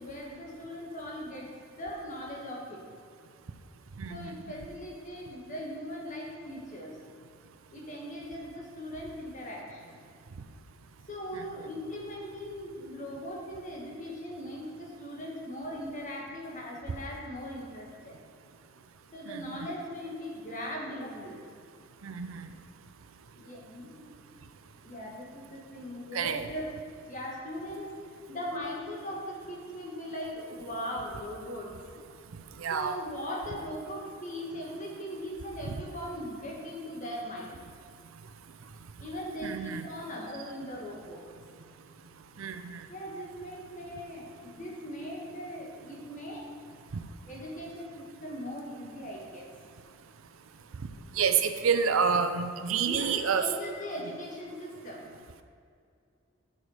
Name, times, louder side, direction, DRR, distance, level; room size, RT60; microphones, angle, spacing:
voice 1, 0.0-1.5 1.8-2.9 4.1-7.0 7.7-10.0 11.1-18.2 19.1-21.4 23.3-24.2 24.8-26.7 27.0-27.9 28.3-31.7 32.7-37.6 39.0-41.3 42.9-46.4 47.3-49.5 52.9-55.0, equal, 35° left, -2 dB, 1.6 m, -39 dB
voice 2, 4.0-4.3 11.3-11.4 19.3-19.7 22.0-22.5 26.1-26.5 32.6-32.9 35.7-35.8 39.4-39.9 42.4-42.9 46.9-47.0 51.1-53.5, right 6 dB, 75° right, 9 dB, 0.5 m, -29 dB
7.0 x 6.4 x 4.9 m, 2.3 s
head